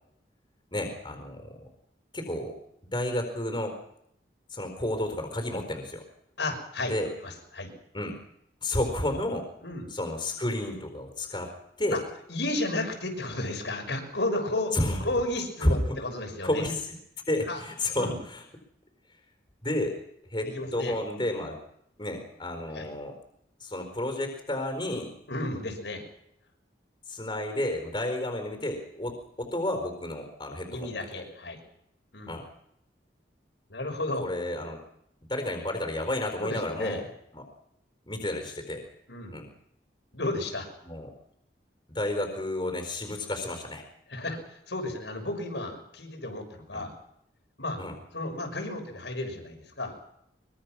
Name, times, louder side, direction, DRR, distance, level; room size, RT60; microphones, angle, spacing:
voice 1, 0.7-1.7 2.1-2.6 2.8-3.7 4.5-6.0 6.8-7.1 7.9-8.2 8.6-9.5 9.9-11.5 11.8-12.0 14.7-15.0 15.6-16.0 16.4-17.0 17.3-18.4 19.6-20.0 20.3-21.6 22.0-23.1 23.6-25.1 27.1-31.1 32.3-32.4 34.2-34.8 35.3-37.1 37.3-37.5 38.1-38.8 39.3-39.5 40.8-41.1 41.9-43.8 46.7-46.8 47.8-47.9, left 1 dB, 25° left, 5 dB, 4.3 m, -31 dB
voice 2, 6.4-6.9 7.2-7.7 9.6-9.9 11.9-12.0 12.3-14.7 15.0-16.6 17.5-17.6 17.9-18.2 20.4-21.0 22.7-22.9 25.3-26.0 30.7-31.6 32.1-32.3 33.7-34.3 36.4-37.0 39.1-39.4 40.1-40.7 44.1-44.4 44.7-46.9 47.6-47.8 48.1-49.9, left 2 dB, 85° left, 3 dB, 6.5 m, -33 dB
24.0 x 23.5 x 6.3 m, 0.75 s
head